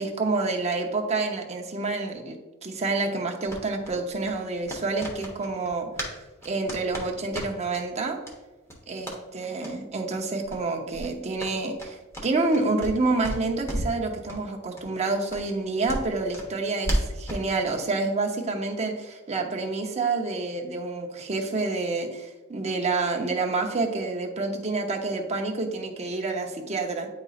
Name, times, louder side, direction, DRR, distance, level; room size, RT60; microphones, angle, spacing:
voice 1, 0.0-5.9 6.4-8.2 8.9-27.1, right 3 dB, 30° right, 1 dB, 0.8 m, -28 dB
sound 1, 3.5-6.2 6.4-7.8 8.2-8.4 8.6-9.2 9.6-9.7 10.1-10.2 10.4-10.6 10.9-13.0 13.2-14.0 14.3-14.4 14.7-14.8 15.3-17.5, equal, 15° left, 1.0 m, -33 dB
9.5 x 4.0 x 2.4 m, 1.2 s
head